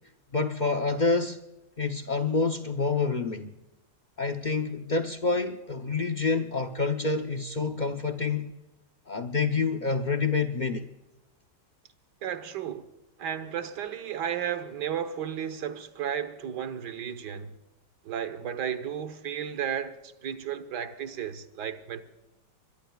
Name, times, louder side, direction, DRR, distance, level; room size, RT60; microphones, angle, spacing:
voice 1, 0.3-1.4 1.8-3.5 4.2-8.5 9.1-10.8, left 4 dB, 55° left, 0.5 m, -27 dB
voice 2, 12.2-12.9 13.2-17.5 18.0-22.0, right 9 dB, 70° right, 1.7 m, -33 dB
24.0 x 22.5 x 2.3 m
omnidirectional pair, 1.9 m